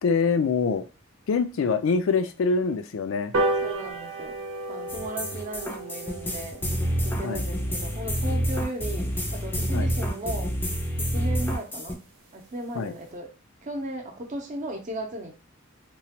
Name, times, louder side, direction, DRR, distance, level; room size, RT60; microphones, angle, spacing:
voice 1, 0.0-0.8 1.3-3.3 7.2-7.4 9.7-9.9 12.8-12.9, left 4 dB, 80° left, 9 dB, 0.4 m, -24 dB
sound 1, 3.3-10.1 10.5-10.6 10.9-11.0 11.3-11.4 11.7-11.8 12.1-12.4 12.8-12.9, right 2 dB, 90° right, 0.8 m, -33 dB
voice 2, 3.6-4.4 4.7-6.7 7.0-10.6 11.0-12.0 12.3-13.3 13.6-15.4, right 1 dB, 40° right, 2 dB, 0.6 m, -36 dB
sound 2, 4.9-11.9, equal, 10° left, 0.4 m, -28 dB
3.0 x 2.2 x 2.8 m, 0.32 s
head